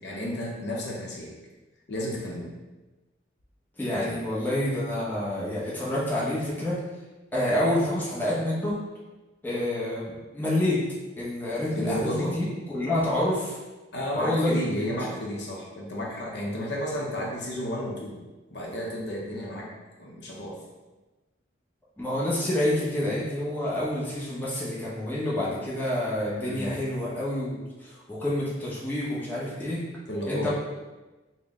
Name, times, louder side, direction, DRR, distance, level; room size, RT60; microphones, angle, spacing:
voice 1, 0.0-1.3 1.9-2.5 3.9-4.2 11.8-12.3 13.9-18.2 18.5-19.7 20.0-20.6 26.4-26.7 30.1-30.5, equal, 60° left, -3 dB, 0.6 m, -32 dB
voice 2, 3.8-6.8 7.3-8.8 9.4-10.8 11.2-13.6 14.1-14.9 22.0-29.8 30.3-30.5, left 1 dB, 10° left, -7 dB, 0.7 m, -28 dB
3.9 x 2.1 x 3.5 m, 1.2 s
head